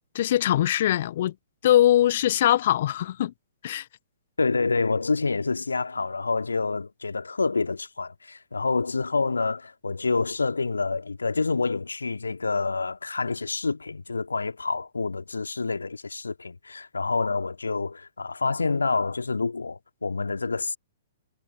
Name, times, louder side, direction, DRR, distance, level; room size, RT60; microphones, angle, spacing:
voice 1, 0.1-1.3 1.6-3.3 3.6-3.9, left 12 dB, 50° left, 0.3 m, -21 dB
voice 2, 4.4-20.8, left 4 dB, 75° left, 2.0 m, -27 dB
figure-of-eight pair, 115°, 0 cm